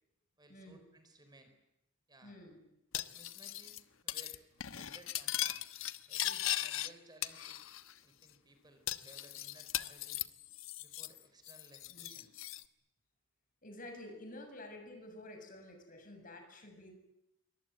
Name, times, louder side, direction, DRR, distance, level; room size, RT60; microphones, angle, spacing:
voice 1, 0.4-1.5 2.1-2.4 2.9-5.6 6.1-7.7 8.0-10.2 10.8-12.3, right 1 dB, 20° right, 7 dB, 4.4 m, -60 dB
voice 2, 2.2-2.6 11.9-12.1 13.6-16.9, left 1 dB, 45° left, 5 dB, 7.3 m, -50 dB
Cutlery silverware, 2.9-3.8 4.1-4.4 4.6-6.9 7.2-7.9 8.2-8.3 8.9-11.2 11.4-12.6, left 13 dB, 85° left, 1.3 m, -38 dB
26.5 x 24.5 x 9.2 m, 0.86 s
head